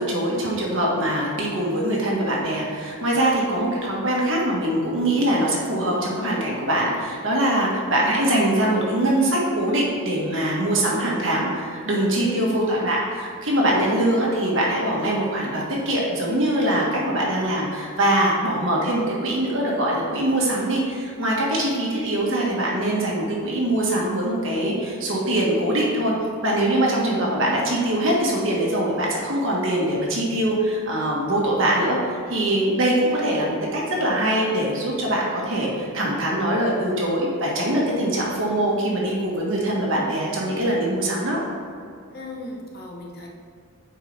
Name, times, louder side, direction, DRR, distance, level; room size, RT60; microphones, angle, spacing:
voice 1, 0.0-26.1 26.4-41.4, right 1 dB, 60° right, -4 dB, 1.7 m, -23 dB
voice 2, 42.1-43.3, left 2 dB, 45° left, 0 dB, 0.9 m, -36 dB
9.4 x 4.6 x 3.5 m, 2.3 s
head